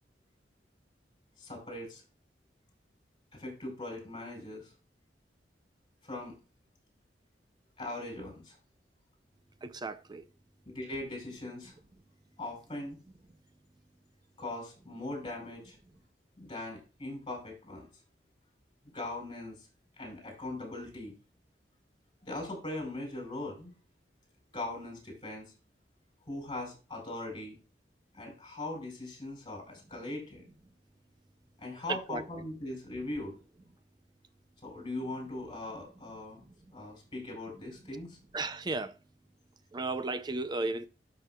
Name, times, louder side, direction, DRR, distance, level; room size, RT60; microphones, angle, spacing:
voice 1, 1.4-2.0 3.3-4.7 6.0-6.3 7.8-8.6 10.7-11.7 12.4-13.0 14.4-15.8 16.4-17.9 18.8-19.7 20.0-21.1 22.2-23.7 24.5-25.5 26.3-27.6 28.1-30.5 31.6-33.4 34.6-36.4 36.7-38.2, left 2 dB, 30° left, 4.6 m, -40 dB
voice 2, 9.6-10.3 31.9-32.2 36.5-36.6 38.3-39.0 39.7-40.9, right 3 dB, 25° right, 0.6 m, -34 dB
12.0 x 6.4 x 2.3 m
head